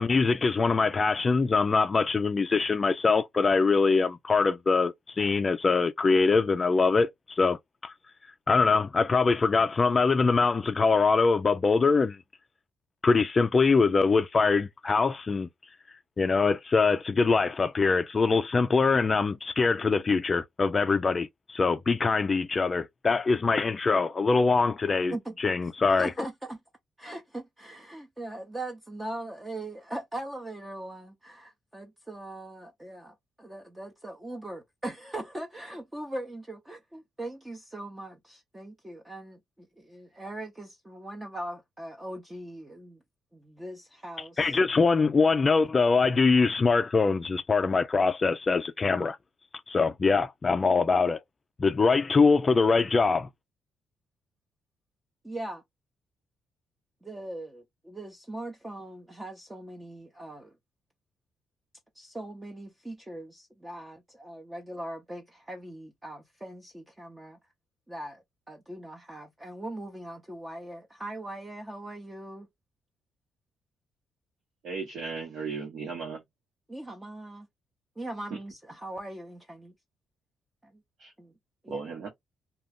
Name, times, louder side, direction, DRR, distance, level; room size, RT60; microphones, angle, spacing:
voice 1, 0.0-7.6 7.8-7.9 8.5-12.2 13.0-15.5 16.2-26.1 44.4-49.2 49.7-51.2 51.6-53.3, left 4 dB, 35° left, 0.3 m, -23 dB
voice 2, 26.0-26.6 27.0-43.0 43.3-45.0 55.2-55.6 57.0-60.6 61.9-67.4 67.9-72.5 76.7-77.5 78.0-79.7 80.6-80.8 81.2-81.3 81.6-81.8, right 1 dB, 15° right, 0.6 m, -40 dB
voice 3, 74.6-76.2 78.3-78.4 81.0-81.1 81.7-82.1, right 4 dB, 70° right, 1.1 m, -36 dB
2.4 x 2.3 x 3.5 m
cardioid pair, 90°, 0 cm